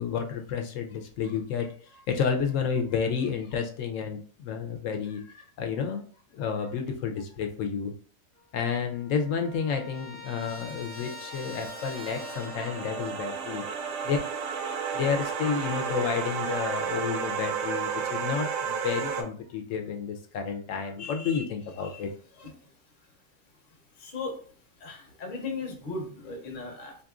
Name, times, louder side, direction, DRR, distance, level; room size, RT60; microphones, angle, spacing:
voice 1, 0.0-6.0 6.3-7.9 8.5-14.2 14.9-22.1 22.4-22.5, left 6 dB, 65° left, 4 dB, 0.9 m, -31 dB
Trumpet, 8.4-8.5 8.7-13.1, left 2 dB, 35° right, 0.5 m, -44 dB
sound 1, 10.8-19.2, right 6 dB, 65° right, 0.7 m, -32 dB
voice 2, 24.0-24.4 24.8-26.9, left 3 dB, 40° left, 2 dB, 0.9 m, -37 dB
3.9 x 2.9 x 2.4 m, 0.43 s
omnidirectional pair, 1.6 m